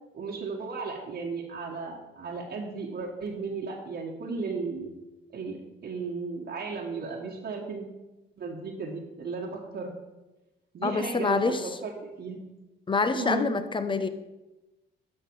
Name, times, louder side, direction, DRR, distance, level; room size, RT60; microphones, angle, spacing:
voice 1, 0.1-4.9 5.3-5.6 5.8-7.8 8.4-9.9 10.7-12.4 13.1-13.5, right 4 dB, 60° right, -3 dB, 1.7 m, -35 dB
voice 2, 10.8-11.7 12.9-14.1, left 4 dB, 25° left, 11 dB, 0.8 m, -26 dB
12.5 x 5.9 x 4.7 m, 1.0 s
cardioid pair, 90°, 20 cm